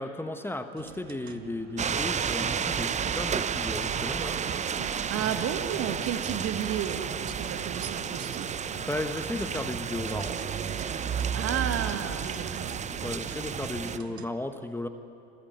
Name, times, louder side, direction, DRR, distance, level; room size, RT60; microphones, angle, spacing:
voice 1, 0.0-4.4 8.8-10.4 13.0-14.9, left 2 dB, 5° left, 8 dB, 1.2 m, -35 dB
sound 1, 0.8-14.3, right 7 dB, 90° right, 0.9 m, -46 dB
sound 2, 1.8-14.0, right 7 dB, 25° right, 0.7 m, -32 dB
voice 2, 5.1-8.5 11.3-13.1, right 9 dB, 50° right, 7 dB, 1.9 m, -32 dB
26.5 x 15.0 x 9.2 m, 2.6 s
hypercardioid pair, 70°, 31 cm